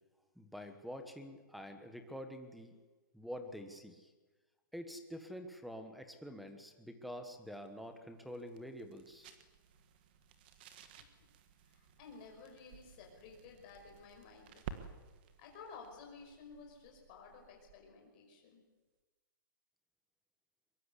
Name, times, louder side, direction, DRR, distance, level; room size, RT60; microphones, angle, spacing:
voice 1, 0.4-2.7 3.1-4.1 4.7-9.3, equal, ahead, 7 dB, 1.2 m, -47 dB
sound 1, 7.3-17.9, right 8 dB, 25° right, 1.5 m, -55 dB
voice 2, 11.7-14.9 15.4-18.6, left 5 dB, 25° left, 1 dB, 5.9 m, -54 dB
23.5 x 22.0 x 8.3 m, 1.3 s
hypercardioid pair, 180°, 11 cm